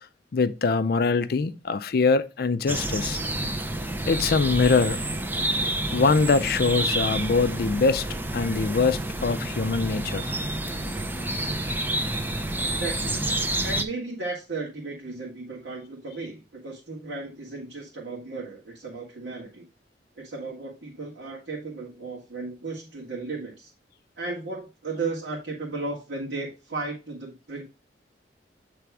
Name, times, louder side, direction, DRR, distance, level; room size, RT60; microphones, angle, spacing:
voice 1, 0.3-3.2 4.0-5.0 5.9-8.0 8.3-10.3, left 4 dB, 55° left, 0.4 m, -23 dB
sound 1, 2.7-13.8, right 1 dB, 10° right, 0.6 m, -29 dB
voice 2, 12.6-13.2 13.6-19.6 20.2-23.7 24.2-27.6, right 3 dB, 80° right, 1.7 m, -35 dB
8.1 x 3.4 x 4.7 m
head